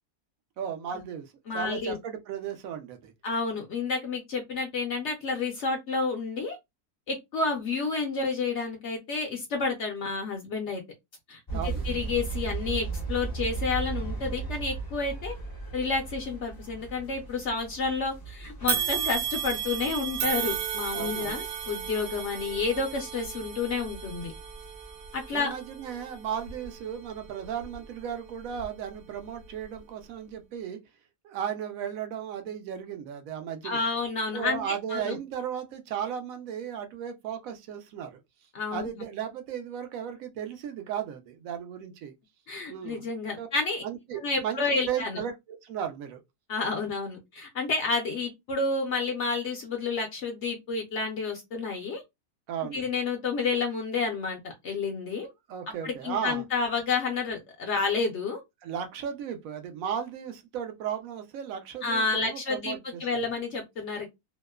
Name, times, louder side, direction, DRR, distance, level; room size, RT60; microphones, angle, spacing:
voice 1, 0.6-3.1 11.5-11.8 20.9-21.4 25.3-30.8 31.2-33.8 34.3-38.2 38.7-42.1 42.7-43.1 43.4-43.5 43.8-44.6 44.9-46.2 52.5-52.8 55.5-56.4 58.6-63.2, right 8 dB, 70° right, 0.9 m, -35 dB
voice 2, 1.5-2.0 3.2-6.6 7.1-10.8 11.3-15.3 15.7-24.3 25.1-25.5 33.6-35.2 38.5-38.9 42.5-43.8 44.2-45.2 46.5-52.0 52.7-55.3 55.8-58.4 61.8-64.1, left 4 dB, 60° left, 0.8 m, -30 dB
sound 1, 11.5-25.4, right 4 dB, 25° left, 0.5 m, -38 dB
sound 2, 18.7-28.0 28.5-28.7 29.6-29.7, right 9 dB, 90° right, 1.1 m, -34 dB
2.8 x 2.0 x 2.2 m
omnidirectional pair, 1.7 m